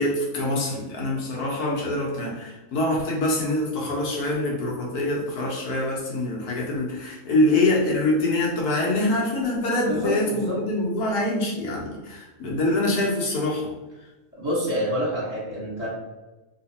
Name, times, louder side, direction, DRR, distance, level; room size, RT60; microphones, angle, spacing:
voice 1, 0.0-13.7, left 2 dB, 80° left, -2 dB, 1.4 m, -25 dB
voice 2, 9.9-10.6 14.3-15.9, equal, 30° right, -8 dB, 1.2 m, -27 dB
3.3 x 3.0 x 2.8 m, 1.1 s
omnidirectional pair, 1.6 m